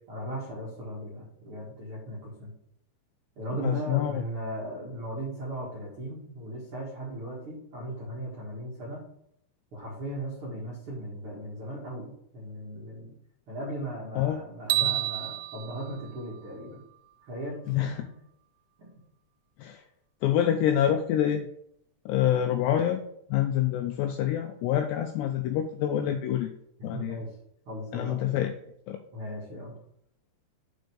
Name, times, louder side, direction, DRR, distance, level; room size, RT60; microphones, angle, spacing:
voice 1, 0.1-2.5 3.3-9.1 9.7-13.1 13.5-16.8 17.3-17.6 17.9-18.1 18.8-18.9 26.9-27.3 27.6-28.3 29.1-29.7, right 1 dB, 60° right, -5 dB, 1.4 m, -37 dB
voice 2, 3.6-4.2 14.2-14.4 14.8-15.0 17.7-17.9 19.6-19.8 20.2-21.5 22.1-23.0 23.3-26.5 26.8-27.2 27.9-28.5 28.9-29.0, left 10 dB, 90° left, 6 dB, 2.4 m, -26 dB
sound 1, 14.7-17.0, right 18 dB, 90° right, 3.1 m, -31 dB
6.6 x 5.2 x 6.2 m, 0.72 s
omnidirectional pair, 5.5 m